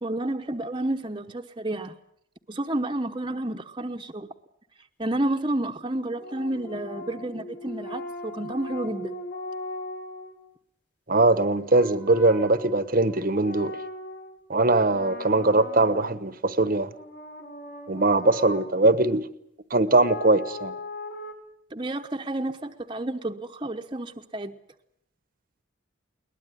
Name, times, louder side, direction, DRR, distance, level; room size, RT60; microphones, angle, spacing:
voice 1, 0.0-2.0 2.5-4.3 5.0-9.2 21.7-24.5, right 1 dB, 25° right, 1.0 m, -30 dB
sound 1, 6.1-10.4 11.5-14.4 14.7-16.3 16.9-18.8 19.9-21.3, left 2 dB, 55° left, 4.6 m, -39 dB
voice 2, 11.1-13.8 14.5-16.9 17.9-19.3 19.7-20.7, right 2 dB, 45° right, 1.1 m, -21 dB
22.0 x 20.0 x 9.8 m
head